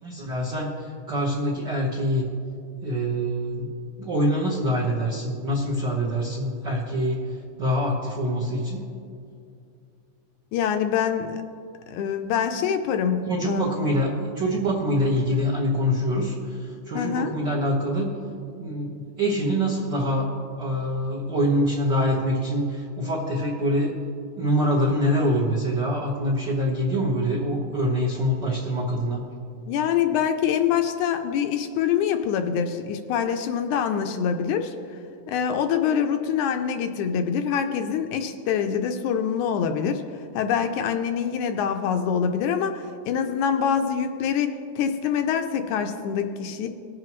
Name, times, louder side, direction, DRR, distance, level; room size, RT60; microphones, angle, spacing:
voice 1, 0.0-2.3 2.8-3.7 4.0-7.2 7.6-8.8 13.3-18.1 18.5-20.3 20.6-23.9 24.4-29.2, equal, 55° right, -5 dB, 1.2 m, -25 dB
voice 2, 10.5-11.4 11.9-13.7 16.9-17.3 29.7-34.7 35.3-40.0 40.3-46.7, left 7 dB, 80° left, 7 dB, 1.9 m, -25 dB
20.5 x 7.6 x 3.0 m, 2.5 s
omnidirectional pair, 3.7 m